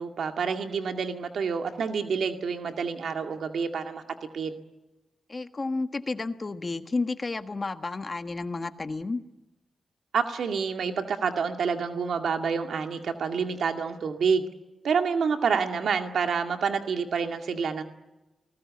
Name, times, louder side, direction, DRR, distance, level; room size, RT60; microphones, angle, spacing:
voice 1, 0.0-4.0 4.3-4.6 10.1-14.4 14.8-17.8, right 6 dB, 85° right, 5 dB, 2.1 m, -28 dB
voice 2, 5.3-9.2, left 3 dB, 35° left, 9 dB, 1.4 m, -31 dB
30.0 x 20.0 x 8.6 m, 1.0 s
wide cardioid pair, 95°, 0 cm